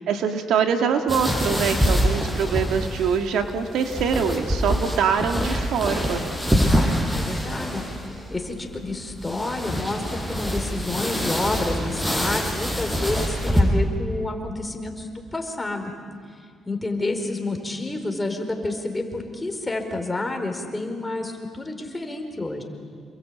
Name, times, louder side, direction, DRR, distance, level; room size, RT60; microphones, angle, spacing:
voice 1, 0.0-6.2, right 6 dB, 80° right, 5 dB, 2.0 m, -24 dB
sound 1, 1.1-13.6, equal, 5° right, 6.3 m, -25 dB
voice 2, 7.1-7.8 8.3-15.9 16.7-22.6, left 2 dB, 15° left, 4 dB, 4.4 m, -29 dB
28.0 x 22.5 x 8.8 m, 2.1 s
cardioid pair, 90°, 0 cm